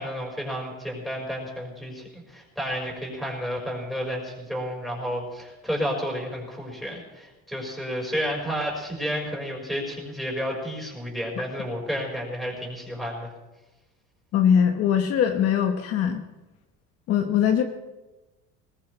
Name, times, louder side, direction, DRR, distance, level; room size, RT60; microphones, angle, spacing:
voice 1, 0.0-13.3, equal, ahead, -2 dB, 5.1 m, -31 dB
voice 2, 14.3-16.2 17.1-17.6, left 8 dB, 55° left, 5 dB, 1.1 m, -21 dB
21.5 x 18.5 x 3.3 m, 1.1 s
cardioid pair, 145°, 29 cm